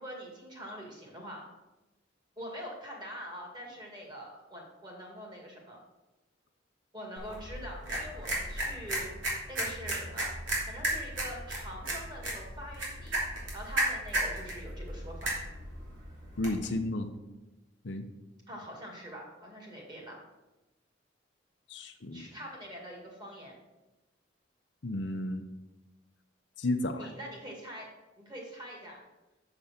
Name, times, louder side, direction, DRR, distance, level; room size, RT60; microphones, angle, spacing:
voice 1, 0.0-1.5 2.4-5.8 6.9-9.1 9.5-10.3 10.7-13.2 13.5-15.3 18.5-20.2 22.1-23.6 26.9-27.9 28.2-29.0, equal, 20° right, -1 dB, 2.1 m, -44 dB
sound 1, 7.2-16.7, right 1 dB, 85° right, 2.9 m, -35 dB
voice 2, 16.4-17.1 17.8-18.1 21.7-22.3 24.8-25.4 26.6-27.1, left 2 dB, 65° left, 7 dB, 0.7 m, -32 dB
7.0 x 6.6 x 5.8 m, 1.0 s
head